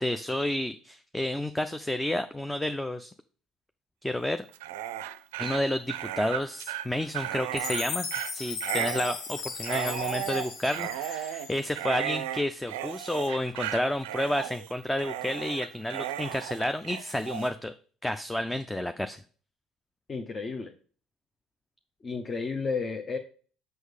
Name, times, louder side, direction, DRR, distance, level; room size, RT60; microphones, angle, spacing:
voice 1, 0.0-3.1 4.0-4.4 5.4-8.1 8.3-17.7 18.0-19.2, left 1 dB, 10° left, 9 dB, 0.5 m, -30 dB
Dog, 4.5-17.5, right 12 dB, 75° right, 0.4 m, -35 dB
Chime, 7.6-11.8, left 5 dB, 60° left, 1.2 m, -37 dB
voice 2, 20.1-20.7 22.0-23.2, left 4 dB, 35° left, 5 dB, 0.9 m, -32 dB
6.4 x 5.4 x 4.8 m, 0.42 s
hypercardioid pair, 60°, 0 cm